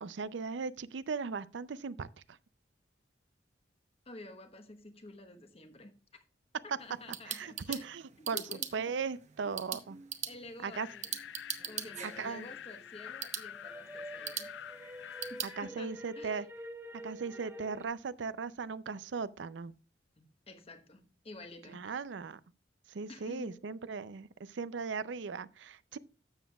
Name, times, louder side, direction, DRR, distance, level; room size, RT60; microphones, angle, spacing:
voice 1, 0.0-2.1 7.3-8.4 8.7-10.0 10.6-10.9 12.2-12.5 15.6-16.5 17.0-19.7 21.7-22.4 22.9-26.0, right 5 dB, 80° right, 0.5 m, -38 dB
voice 2, 4.0-6.2 6.6-7.9 8.2-8.9 9.4-9.8 10.2-11.1 11.7-14.5 15.3-16.5 20.2-21.9 23.1-23.6, left 2 dB, 35° left, 1.1 m, -50 dB
sound 1, 6.8-15.5, right 9 dB, 40° right, 0.8 m, -43 dB
sound 2, 10.7-15.7, left 10 dB, 75° left, 0.3 m, -47 dB
sound 3, 11.6-13.1 13.5-17.9, equal, 10° right, 1.0 m, -48 dB
12.5 x 7.3 x 2.3 m
head